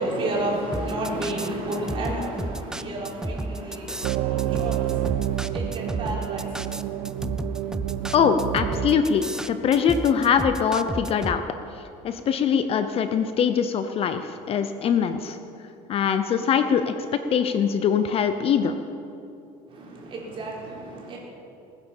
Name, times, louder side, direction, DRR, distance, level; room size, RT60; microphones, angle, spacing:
voice 1, 0.0-8.1 19.7-21.2, right 1 dB, 35° right, -3 dB, 4.4 m, -32 dB
sound 1, 0.7-11.4, right 1 dB, 5° right, 0.4 m, -32 dB
sound 2, 4.0-9.0, right 14 dB, 70° right, 0.5 m, -29 dB
voice 2, 8.1-11.4 12.0-15.4 15.9-16.9 17.3-18.7, left 7 dB, 40° left, 9 dB, 0.7 m, -22 dB
20.0 x 9.9 x 7.1 m, 2.7 s
cardioid pair, 155°, 16 cm